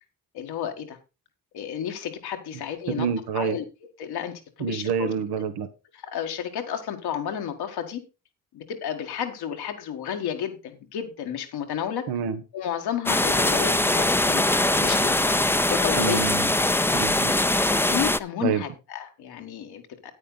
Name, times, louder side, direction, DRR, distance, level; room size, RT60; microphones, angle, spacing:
voice 1, 0.3-1.0 1.5-3.1 3.3-3.6 4.0-5.1 6.0-8.0 8.5-12.1 12.5-14.5 14.8-15.2 15.7-16.3 17.4-20.1, left 9 dB, 90° left, 5 dB, 1.5 m, -32 dB
voice 2, 2.9-3.6 4.6-5.7 12.1-12.4 16.0-16.4 16.9-17.3 18.4-18.6, right 7 dB, 85° right, 9 dB, 1.2 m, -27 dB
sound 1, 13.1-18.2, left 1 dB, 5° left, 0.5 m, -22 dB
9.7 x 9.1 x 3.9 m, 0.28 s
supercardioid pair, 45°, 37 cm